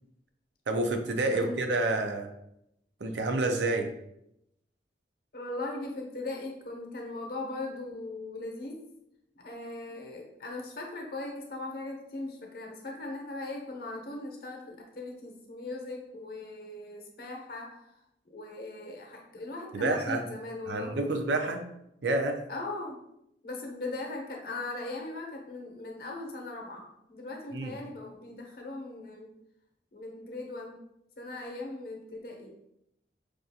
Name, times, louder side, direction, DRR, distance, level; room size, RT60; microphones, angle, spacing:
voice 1, 0.7-2.3 3.0-3.8 19.7-20.2 20.7-21.6 22.0-22.4 27.5-27.7, right 2 dB, 80° right, 5 dB, 0.5 m, -28 dB
voice 2, 1.3-1.7 5.3-8.8 9.3-17.9 18.3-21.1 22.5-23.0 23.4-29.3 29.9-30.8 31.2-32.5, left 2 dB, 60° left, 1 dB, 0.7 m, -39 dB
4.8 x 2.4 x 2.7 m, 0.81 s
head